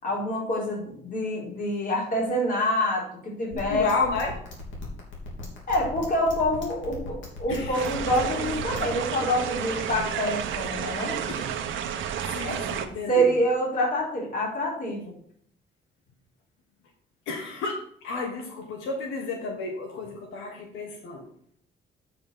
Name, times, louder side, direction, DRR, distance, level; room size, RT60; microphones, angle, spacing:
voice 1, 0.0-3.9 5.7-11.2 12.4-12.6 12.9-15.1, equal, 45° left, -4 dB, 4.3 m, -26 dB
voice 2, 3.5-4.4 7.5-7.9 11.3-11.5 12.3-13.3 17.3-21.3, left 3 dB, 90° left, 2 dB, 1.5 m, -32 dB
sound 1, 3.5-8.9, left 2 dB, 75° left, 3.2 m, -38 dB
sound 2, 7.7-12.9, right 8 dB, 75° right, 1.1 m, -31 dB
8.4 x 5.2 x 6.7 m, 0.63 s
cardioid pair, 90°, 20 cm